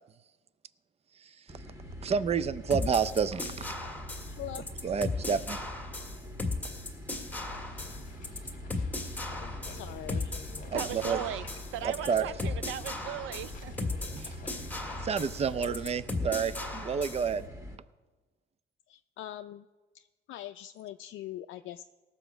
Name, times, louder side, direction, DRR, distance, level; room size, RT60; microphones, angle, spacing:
sound 1, 1.5-17.8, equal, 15° right, 1.9 m, -44 dB
voice 1, 2.0-3.7 4.8-5.6 10.7-11.2 11.8-12.3 14.1-14.3 15.0-17.5, right 6 dB, 30° right, 0.5 m, -29 dB
sound 2, 2.7-17.3, left 3 dB, 10° left, 1.8 m, -36 dB
voice 2, 4.3-4.7 9.7-10.4 10.9-11.0 18.9-19.7 19.9-21.8, left 12 dB, 75° left, 0.4 m, -42 dB
sound 3, 7.5-16.0, left 5 dB, 40° left, 1.3 m, -49 dB
voice 3, 10.7-11.5 11.7-13.7, right 11 dB, 90° right, 0.5 m, -37 dB
18.0 x 6.9 x 5.0 m
cardioid pair, 90°, 20 cm